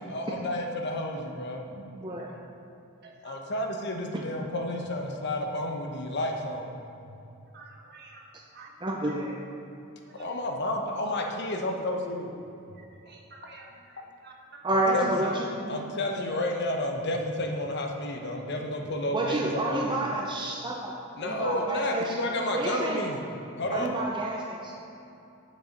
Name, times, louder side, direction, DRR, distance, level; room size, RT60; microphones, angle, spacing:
voice 1, 0.0-1.6 3.2-6.7 10.2-12.3 14.7-15.3 15.7-20.0 21.2-23.2 23.6-23.9, left 1 dB, 50° left, 2 dB, 0.9 m, -31 dB
voice 2, 2.0-2.3 8.3-8.4 8.8-9.4 14.6-15.5 19.1-22.2 22.5-23.1 23.7-24.7, right 2 dB, 20° right, 0 dB, 0.6 m, -29 dB
voice 3, 3.0-3.4 7.0-7.1 7.5-8.2 8.5-8.7 13.1-13.7 14.2-14.3 14.8-16.1, equal, 50° right, 1 dB, 1.2 m, -41 dB
8.1 x 7.5 x 5.3 m, 2.8 s
head